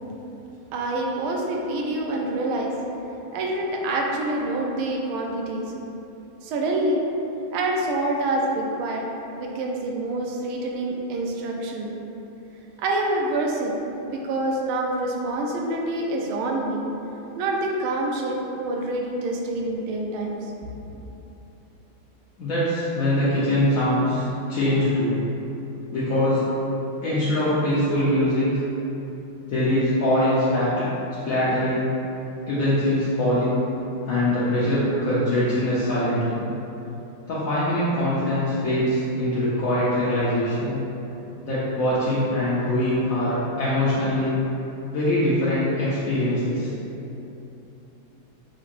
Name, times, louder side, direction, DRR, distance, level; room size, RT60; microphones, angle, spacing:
voice 1, 0.7-2.7 3.3-5.6 6.4-7.0 7.5-9.0 9.3-11.9 12.8-13.8 14.1-16.8 17.4-20.3, right 2 dB, 80° right, 0 dB, 1.4 m, -26 dB
voice 2, 22.4-25.2 25.9-26.4 27.0-28.6 29.5-30.8 31.2-31.9 32.5-33.6 34.1-36.4 37.3-40.8 41.4-44.3 44.9-46.7, left 1 dB, 70° left, -10 dB, 0.8 m, -23 dB
6.0 x 3.0 x 2.5 m, 2.9 s
omnidirectional pair, 2.3 m